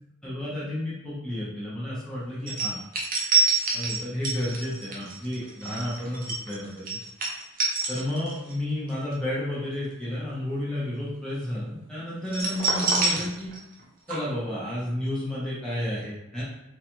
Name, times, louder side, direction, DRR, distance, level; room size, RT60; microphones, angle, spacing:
voice 1, 0.2-2.8 3.7-6.9 7.9-13.5 14.1-16.4, left 1 dB, 5° left, -9 dB, 0.8 m, -31 dB
sound 1, 2.5-8.5 8.9-9.1 12.3-13.8 14.1-14.2, right 3 dB, 40° right, 0.5 m, -27 dB
2.4 x 2.3 x 2.9 m, 0.89 s
head